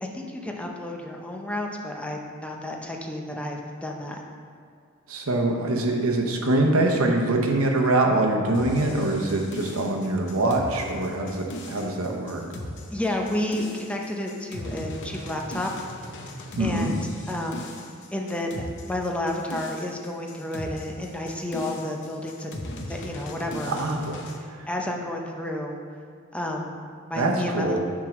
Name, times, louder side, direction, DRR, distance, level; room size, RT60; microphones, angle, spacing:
voice 1, 0.0-4.2 12.9-15.7 16.6-17.0 17.3-17.7 18.1-23.8 24.7-25.8 26.3-26.8 27.1-27.8, left 1 dB, 5° left, 0 dB, 0.6 m, -31 dB
voice 2, 5.1-12.4 16.6-16.9 23.7-24.2 27.2-27.8, right 2 dB, 80° right, 1 dB, 0.9 m, -24 dB
sound 1, 8.5-24.4, left 1 dB, 60° left, 0.7 m, -38 dB
7.4 x 3.7 x 6.0 m, 2.2 s
head